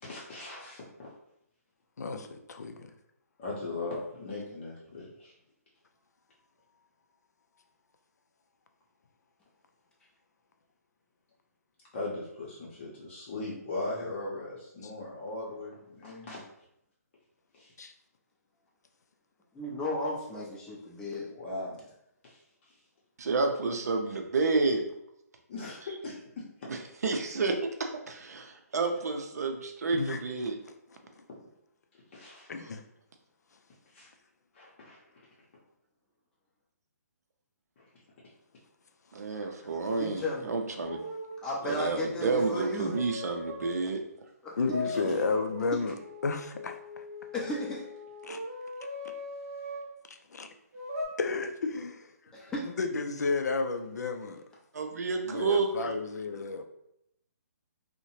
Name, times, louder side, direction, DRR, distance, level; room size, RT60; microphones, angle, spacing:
voice 1, 0.0-1.1 3.4-5.3 11.9-16.4 17.5-17.7 21.3-21.8 22.2-22.7 25.5-26.5 32.1-32.5 33.9-34.1 34.5-35.3 37.8-37.9, left 2 dB, 45° left, -5 dB, 0.7 m, -39 dB
voice 2, 2.0-2.9 14.8-14.9 17.8-17.9 29.9-30.2 30.7-30.8 31.2-31.3 32.5-32.8 39.4-40.0 44.6-45.9 46.2-47.0 48.2-48.4 50.1-50.5 51.2-52.3 52.6-54.4 55.2-56.6, left 4 dB, 80° left, 6 dB, 0.4 m, -33 dB
voice 3, 19.5-21.3 40.0-40.5 41.4-43.0 44.4-44.6 44.8-45.0 47.3-47.9 52.3-52.6, left 1 dB, 10° left, -4 dB, 0.5 m, -34 dB
voice 4, 23.2-24.8 26.7-30.6 39.1-41.0 41.6-44.0 54.7-56.0, right 3 dB, 70° right, 4 dB, 0.5 m, -30 dB
sound 1, 40.8-41.4 42.3-43.9 44.7-49.9 50.7-51.1, left 1 dB, 25° right, 0.8 m, -40 dB
2.7 x 2.1 x 2.9 m, 0.78 s
hypercardioid pair, 150°, 9 cm